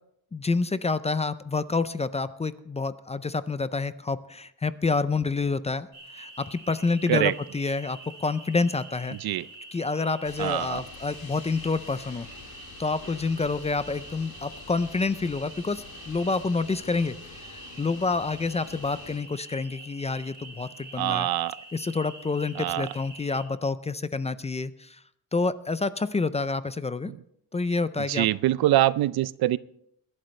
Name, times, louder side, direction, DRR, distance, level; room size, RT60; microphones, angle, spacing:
voice 1, 0.3-5.9 6.1-9.2 9.7-12.3 12.8-21.3 21.7-25.0 25.3-27.1 27.5-28.3, left 3 dB, 20° left, 14 dB, 0.4 m, -28 dB
sound 1, 5.9-23.5, right 2 dB, 30° right, 3.7 m, -46 dB
sound 2, 10.2-19.2, left 4 dB, 75° left, 4.4 m, -47 dB
voice 2, 10.4-10.8 21.0-21.6 22.6-22.9 27.1-27.2 28.1-29.6, right 14 dB, 80° right, 18 dB, 0.5 m, -24 dB
21.5 x 11.5 x 3.2 m, 0.72 s
wide cardioid pair, 145°, 37 cm